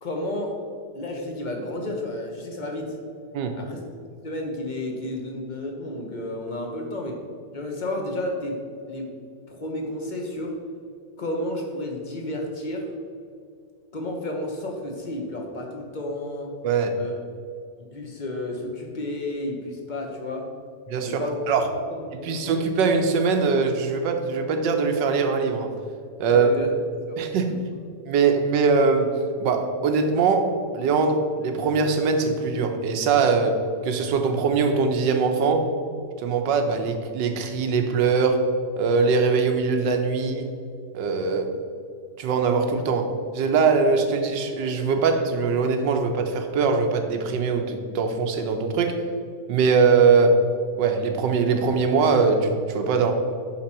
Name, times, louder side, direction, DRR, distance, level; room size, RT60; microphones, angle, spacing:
voice 1, 0.0-0.5 0.9-3.0 3.6-3.8 4.2-7.2 7.5-9.1 9.5-10.6 11.2-12.9 13.9-16.5 17.0-17.1 17.8-20.5 21.0-21.4 21.9-22.5 26.3-26.7 27.1-27.2 27.5-27.6, left 1 dB, 30° left, 1 dB, 1.1 m, -32 dB
voice 2, 20.9-21.2 21.5-21.7 22.2-25.7 26.2-26.5 27.2-27.5 28.1-35.7 36.2-38.5 38.8-40.5 40.9-41.5 42.2-49.0 49.5-50.4 50.8-53.1, right 4 dB, 80° right, 5 dB, 1.5 m, -22 dB
8.7 x 6.2 x 4.3 m, 2.4 s
omnidirectional pair, 1.9 m